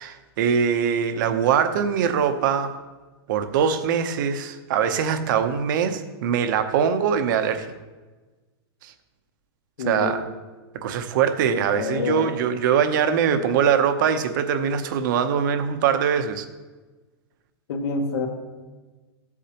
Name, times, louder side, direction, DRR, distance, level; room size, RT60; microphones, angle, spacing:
voice 1, 0.0-2.7 3.3-7.7 8.8-8.9 9.9-10.2 10.7-16.5, right 7 dB, 45° right, 9 dB, 0.8 m, -22 dB
voice 2, 9.8-10.1 11.4-12.3 17.7-18.3, left 4 dB, 75° left, 3 dB, 1.7 m, -27 dB
15.0 x 8.3 x 2.9 m, 1.3 s
supercardioid pair, 170°, 14 cm